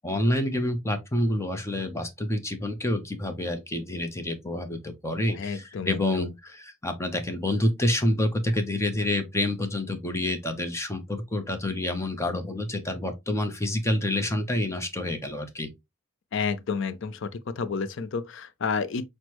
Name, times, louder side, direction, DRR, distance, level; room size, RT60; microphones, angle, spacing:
voice 1, 0.0-15.7, left 1 dB, 15° left, 0.6 m, -28 dB
voice 2, 5.4-6.3 16.3-17.3 17.6-19.0, left 5 dB, 60° left, 0.4 m, -30 dB
6.0 x 2.1 x 2.9 m
head